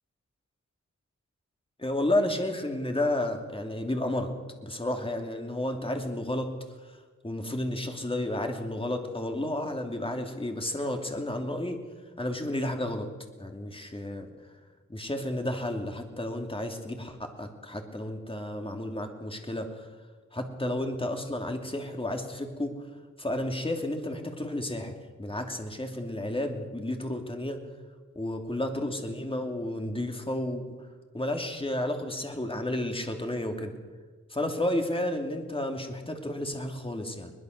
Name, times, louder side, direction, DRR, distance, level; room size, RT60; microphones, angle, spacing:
voice 1, 1.8-4.3 4.6-6.5 6.8-11.8 12.2-13.1 13.4-14.3 14.9-19.9 20.3-22.7 23.2-27.6 28.1-30.6 31.1-33.7 34.3-37.3, left 1 dB, 20° left, 3 dB, 2.8 m, -32 dB
22.0 x 20.5 x 6.7 m, 1.4 s
wide cardioid pair, 105°, 30 cm